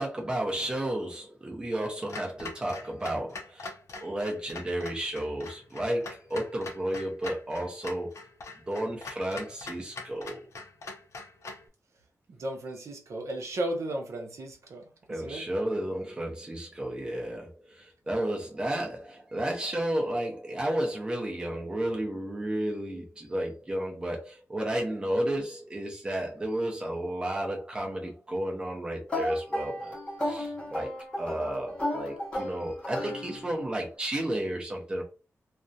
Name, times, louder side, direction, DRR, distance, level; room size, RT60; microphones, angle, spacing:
voice 1, 0.0-3.7 4.0-8.1 8.7-10.4 15.1-30.9 31.2-35.0, right 1 dB, 15° right, 0.5 m, -32 dB
Clock, 2.1-11.7, left 3 dB, 60° left, 0.5 m, -43 dB
voice 2, 12.3-15.4, right 1 dB, 60° right, 0.6 m, -35 dB
sound 1, 29.1-33.7, left 1 dB, 20° left, 0.7 m, -34 dB
2.4 x 2.1 x 2.6 m
wide cardioid pair, 170°, 6 cm